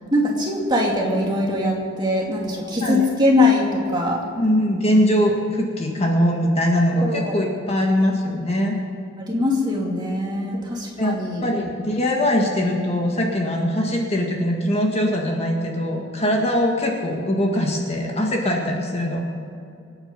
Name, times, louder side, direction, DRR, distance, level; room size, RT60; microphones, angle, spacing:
voice 1, 0.1-4.2 7.0-7.4 9.2-11.5, left 2 dB, 20° right, -2 dB, 2.3 m, -22 dB
voice 2, 2.7-3.1 4.4-8.8 11.0-11.2 11.4-19.2, equal, 30° left, 0 dB, 1.8 m, -21 dB
26.0 x 9.0 x 5.3 m, 2.5 s
head